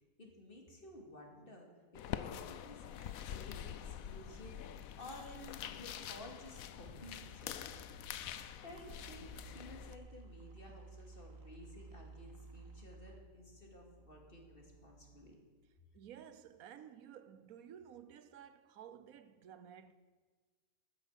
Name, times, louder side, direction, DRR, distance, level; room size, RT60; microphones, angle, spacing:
voice 1, 0.2-15.4, left 1 dB, 40° left, 2.6 m, -54 dB
sound 1, 1.9-10.0, left 10 dB, 80° left, 1.1 m, -46 dB
sound 2, 7.3-15.8, right 3 dB, 70° right, 1.6 m, -56 dB
voice 2, 15.9-19.9, right 9 dB, 85° right, 1.2 m, -54 dB
13.0 x 10.0 x 7.3 m
omnidirectional pair, 1.5 m